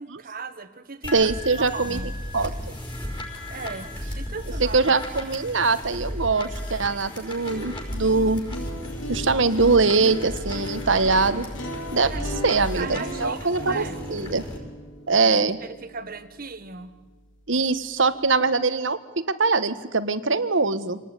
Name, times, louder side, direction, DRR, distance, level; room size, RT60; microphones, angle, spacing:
voice 1, 0.0-2.1 3.4-4.9 12.0-14.0 15.6-16.9, right 4 dB, 50° right, 11 dB, 1.6 m, -37 dB
sound 1, 1.0-14.6, left 1 dB, 25° left, 5.5 m, -35 dB
voice 2, 1.1-2.0 2.3-2.8 4.6-8.4 9.1-11.4 11.9-12.1 12.4-14.4 15.1-15.6 17.5-21.0, right 4 dB, 75° right, 12 dB, 1.4 m, -22 dB
sound 2, 7.3-17.3, equal, 75° left, 3.9 m, -37 dB
26.5 x 19.0 x 10.0 m, 1.2 s
head